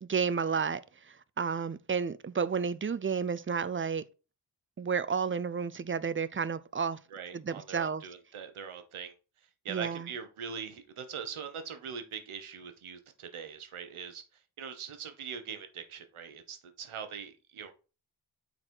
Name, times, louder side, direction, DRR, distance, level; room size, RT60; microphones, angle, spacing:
voice 1, 0.0-4.0 4.8-7.0 7.3-8.0 9.7-10.1, right 6 dB, 25° right, 0.4 m, -31 dB
voice 2, 7.1-9.1 9.6-17.7, right 7 dB, 85° right, 1.1 m, -42 dB
6.5 x 4.2 x 4.4 m
cardioid pair, 55°, 49 cm